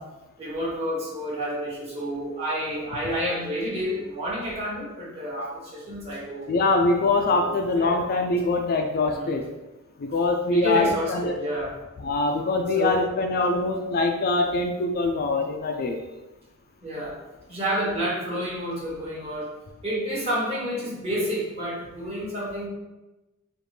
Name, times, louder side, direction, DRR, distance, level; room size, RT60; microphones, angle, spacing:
voice 1, 0.4-6.5 7.3-7.4 7.7-8.0 9.1-9.4 10.4-11.7 12.7-13.0 16.8-17.2 17.5-19.5 19.8-22.7, equal, 30° right, -6 dB, 1.4 m, -29 dB
voice 2, 6.5-9.4 10.0-11.3 12.0-16.0, left 3 dB, 40° left, 3 dB, 0.3 m, -23 dB
5.0 x 2.5 x 3.1 m, 1.1 s
head